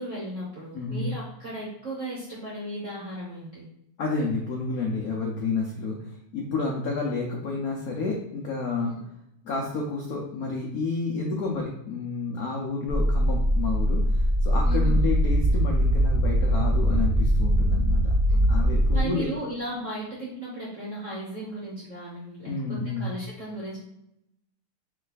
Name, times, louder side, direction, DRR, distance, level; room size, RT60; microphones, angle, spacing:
voice 1, 0.0-3.6 14.6-14.9 18.3-18.4 18.9-23.8, right 1 dB, 50° right, -5 dB, 0.9 m, -36 dB
voice 2, 0.7-1.1 4.0-8.9 9.4-18.1 18.5-19.5 22.4-23.1, left 3 dB, 85° left, -1 dB, 0.7 m, -30 dB
sound 1, 12.9-19.0, equal, 10° right, 0.7 m, -22 dB
3.3 x 3.2 x 3.9 m, 0.81 s
omnidirectional pair, 2.4 m